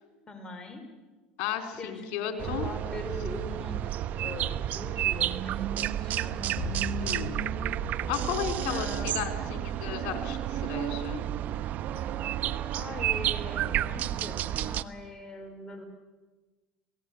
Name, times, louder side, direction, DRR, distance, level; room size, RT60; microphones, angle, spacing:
voice 1, 0.3-0.8 1.8-6.6 8.7-9.4 12.7-15.8, left 2 dB, 25° left, 5 dB, 5.3 m, -42 dB
voice 2, 1.4-2.7 7.0-7.4 8.1-11.3, left 9 dB, 70° left, 6 dB, 4.1 m, -34 dB
sound 1, 2.4-14.8, right 12 dB, 55° right, 1.0 m, -31 dB
sound 2, 6.6-11.0, left 7 dB, 50° left, 2.9 m, -41 dB
27.0 x 18.5 x 9.4 m, 1.3 s
supercardioid pair, 90°, 3 cm